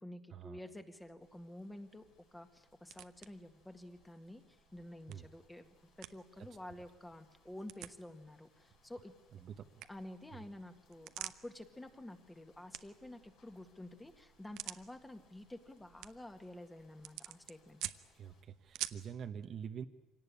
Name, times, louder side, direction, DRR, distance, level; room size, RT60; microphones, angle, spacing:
voice 1, 0.0-2.0 2.3-9.1 9.9-17.8, left 1 dB, 10° left, 7 dB, 1.9 m, -50 dB
sound 1, 1.0-19.2, right 15 dB, 80° right, 0.9 m, -51 dB
sound 2, 1.2-18.4, left 5 dB, 70° left, 5.7 m, -73 dB
voice 2, 9.4-9.8 18.1-19.9, right 8 dB, 45° right, 8 dB, 1.1 m, -46 dB
25.0 x 18.0 x 9.9 m, 1.0 s
cardioid pair, 140°, 0 cm